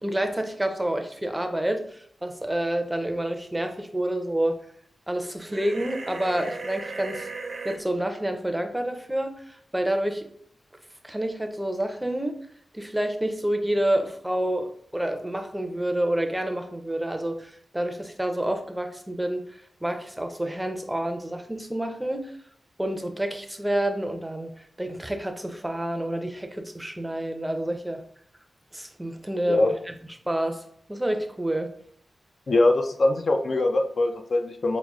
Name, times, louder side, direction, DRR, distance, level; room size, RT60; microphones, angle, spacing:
voice 1, 0.0-4.6 5.1-7.3 7.6-10.3 11.0-12.4 12.7-22.3 22.8-24.5 24.8-28.0 28.7-29.9 30.3-30.6 30.9-31.7, right 1 dB, 10° right, 6 dB, 0.5 m, -28 dB
sound 1, 5.5-7.8, right 3 dB, 70° right, 0.5 m, -36 dB
voice 2, 32.5-34.8, left 2 dB, 60° left, 5 dB, 0.4 m, -22 dB
6.0 x 2.0 x 2.3 m, 0.64 s
cardioid pair, 65°, 0 cm